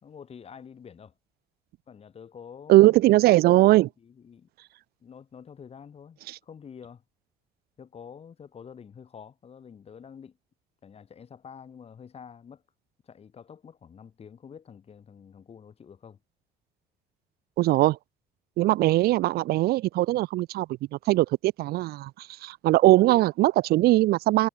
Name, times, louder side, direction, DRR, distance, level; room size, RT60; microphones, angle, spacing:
voice 1, 0.0-1.1 1.9-3.0 4.0-4.5 5.0-7.0 7.8-10.4 10.8-12.6 13.0-16.2, left 7 dB, 35° left, 1.8 m, -47 dB
voice 2, 2.7-3.9 17.6-18.0 18.6-24.5, right 17 dB, 65° right, 0.4 m, -20 dB
cardioid pair, 110°, 17 cm